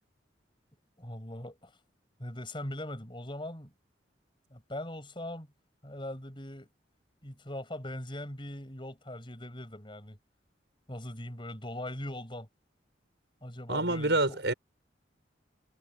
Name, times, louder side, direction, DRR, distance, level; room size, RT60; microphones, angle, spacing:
voice 1, 1.0-1.7 2.2-3.7 4.5-5.5 5.8-6.7 7.2-10.2 10.9-12.5 13.4-14.4, left 1 dB, 30° left, 7.4 m, -40 dB
voice 2, 13.7-14.5, right 2 dB, 75° right, 6.2 m, -27 dB
head